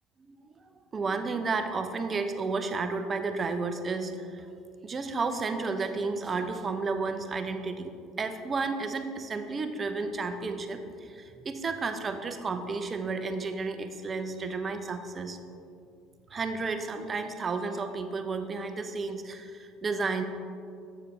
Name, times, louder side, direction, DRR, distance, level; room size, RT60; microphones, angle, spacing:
voice 1, 0.9-4.5 4.8-15.4 16.3-20.2, right 4 dB, 35° right, 7 dB, 0.6 m, -32 dB
7.5 x 6.7 x 3.2 m, 2.4 s
hypercardioid pair, 65°, 0 cm